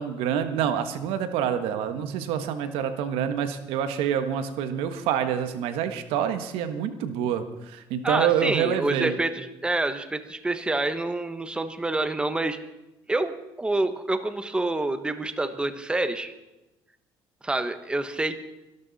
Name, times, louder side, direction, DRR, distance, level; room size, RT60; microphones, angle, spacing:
voice 1, 0.0-9.1, right 9 dB, 90° right, 9 dB, 1.4 m, -27 dB
voice 2, 8.0-12.6 13.1-16.3 17.4-18.4, right 2 dB, 10° right, 9 dB, 1.2 m, -27 dB
24.5 x 12.5 x 4.2 m, 0.97 s
cardioid pair, 120°, 9 cm